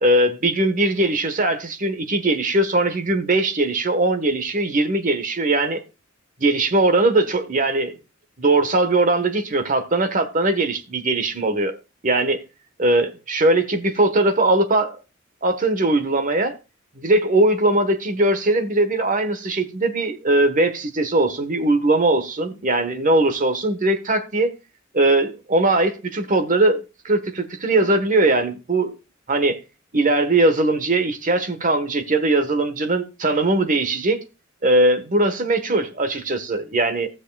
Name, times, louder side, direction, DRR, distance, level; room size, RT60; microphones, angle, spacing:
voice 1, 0.0-5.8 6.4-7.9 8.4-11.8 12.0-12.4 12.8-15.0 15.4-16.6 17.0-24.5 24.9-26.8 27.0-29.0 29.3-29.6 29.9-34.2 34.6-37.1, right 2 dB, 40° right, 1.2 m, -20 dB
18.0 x 6.4 x 2.3 m
head